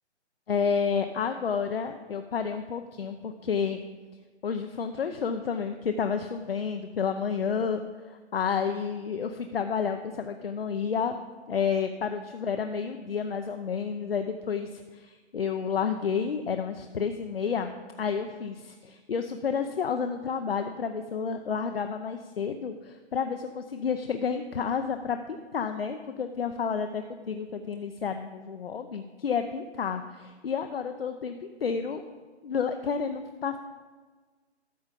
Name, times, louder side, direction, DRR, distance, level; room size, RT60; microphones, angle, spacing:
voice 1, 0.5-3.8 4.4-7.8 8.1-11.2 11.5-32.0 32.4-33.6, left 6 dB, 55° left, 6 dB, 0.7 m, -30 dB
13.0 x 7.0 x 5.1 m, 1.4 s
hypercardioid pair, 175°, 34 cm